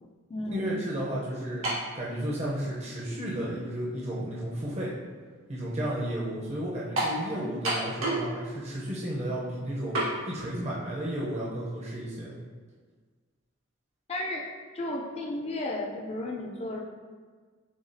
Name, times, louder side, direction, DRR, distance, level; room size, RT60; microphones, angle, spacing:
voice 1, 0.0-0.8 14.1-14.4 14.7-16.8, left 1 dB, 30° left, -1 dB, 0.4 m, -34 dB
voice 2, 0.5-1.7 1.9-4.9 5.5-10.0 10.3-12.3, right 1 dB, 30° right, -6 dB, 0.6 m, -33 dB
sound 1, 1.6-1.9 2.8-2.9 7.0-7.2 7.6-8.3 8.6-8.7 9.9-10.1, right 2 dB, 85° right, 1.5 m, -28 dB
7.0 x 2.3 x 2.6 m, 1.5 s
head